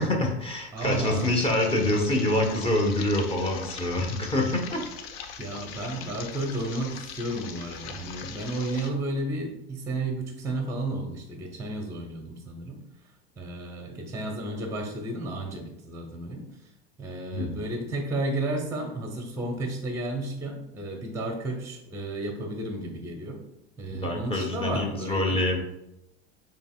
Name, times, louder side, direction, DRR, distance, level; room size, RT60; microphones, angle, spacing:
voice 1, 0.0-4.8 17.3-17.6 23.9-25.6, left 1 dB, 15° left, 1 dB, 1.1 m, -26 dB
voice 2, 0.7-1.3 5.4-12.8 13.4-16.5 17.0-23.4 23.8-25.4, right 2 dB, 10° right, 2 dB, 0.8 m, -32 dB
sound 1, 0.8-8.9, left 6 dB, 65° left, 0.6 m, -41 dB
6.9 x 3.0 x 2.4 m, 0.86 s
hypercardioid pair, 80°, 32 cm